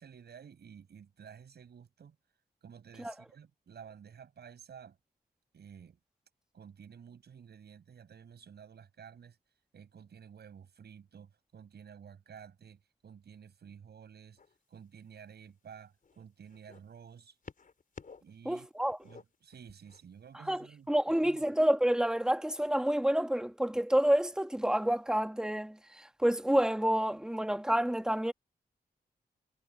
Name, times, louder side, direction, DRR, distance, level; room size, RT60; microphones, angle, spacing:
voice 1, 0.0-2.2 2.6-5.0 5.5-6.0 6.5-9.4 9.7-14.4 14.7-17.4 18.2-18.7 19.0-21.4, right 7 dB, 85° right, 6.9 m, -52 dB
sound 1, 14.4-14.7 15.5-16.8 17.4-18.4 18.6-20.0 20.9-21.0, left 5 dB, 55° left, 5.0 m, -52 dB
voice 2, 18.4-19.0 20.5-28.3, right 1 dB, 5° right, 1.7 m, -29 dB
wide cardioid pair, 90°, 17 cm